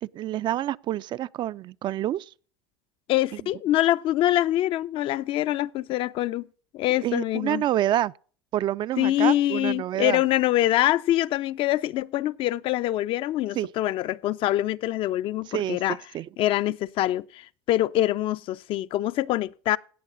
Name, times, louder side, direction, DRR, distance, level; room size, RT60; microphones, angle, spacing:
voice 1, 0.0-2.3 3.3-3.4 7.0-8.1 8.5-10.2 13.6-13.7 15.5-16.3, right 12 dB, 40° right, 0.4 m, -28 dB
voice 2, 3.1-6.4 6.7-7.6 9.0-16.0 16.4-19.8, left 14 dB, 50° left, 0.5 m, -24 dB
17.0 x 7.1 x 3.9 m
supercardioid pair, 95°, 12 cm